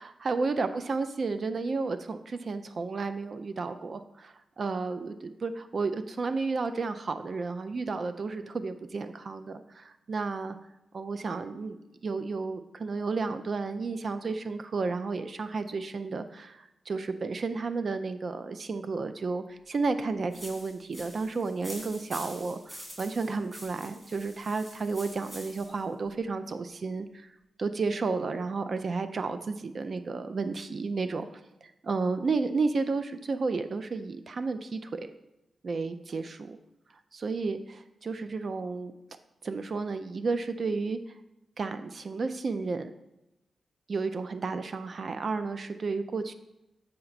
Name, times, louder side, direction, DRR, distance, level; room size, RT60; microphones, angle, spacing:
voice 1, 0.0-10.6 10.9-27.3 27.6-31.3 31.6-35.1 35.6-36.6 37.1-38.9 39.4-41.0 41.6-42.9 43.9-46.3, right 4 dB, 55° right, 10 dB, 0.5 m, -32 dB
sound 1, 20.3-25.8, equal, 20° right, 2.5 m, -46 dB
7.5 x 4.5 x 4.0 m, 0.91 s
cardioid pair, 70°, 0 cm